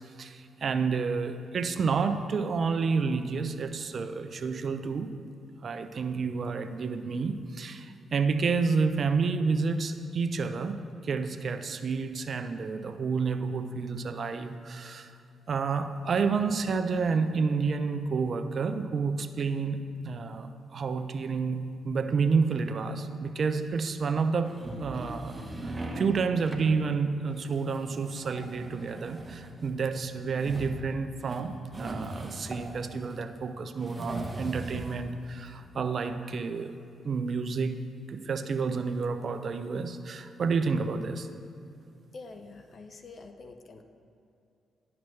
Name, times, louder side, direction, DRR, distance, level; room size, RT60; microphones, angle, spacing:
voice 1, 0.2-5.1 5.6-10.8 11.0-15.1 15.5-36.8 37.0-37.8 38.1-41.3, right 5 dB, 55° right, 9 dB, 0.5 m, -30 dB
sound 1, 24.5-26.1 26.4-26.7 27.4-33.2 33.8-35.0, right 1 dB, 25° right, 1.0 m, -40 dB
voice 2, 42.1-43.8, left 3 dB, 50° left, 6 dB, 0.5 m, -46 dB
10.5 x 6.0 x 3.2 m, 2.6 s
supercardioid pair, 55°, 0 cm